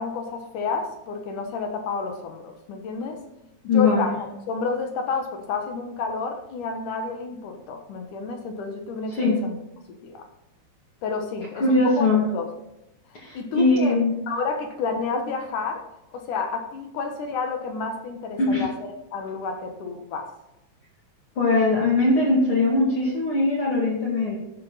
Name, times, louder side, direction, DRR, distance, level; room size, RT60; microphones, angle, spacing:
voice 1, 0.0-3.2 3.7-9.6 10.0-10.3 11.0-12.5 13.1-14.0 14.3-20.3, left 4 dB, 70° left, 4 dB, 2.7 m, -30 dB
voice 2, 3.7-4.1 9.1-9.4 11.5-12.3 13.1-14.1 18.4-18.7 21.4-24.4, left 2 dB, 45° left, -4 dB, 2.8 m, -21 dB
13.5 x 8.7 x 4.0 m, 0.88 s
omnidirectional pair, 3.9 m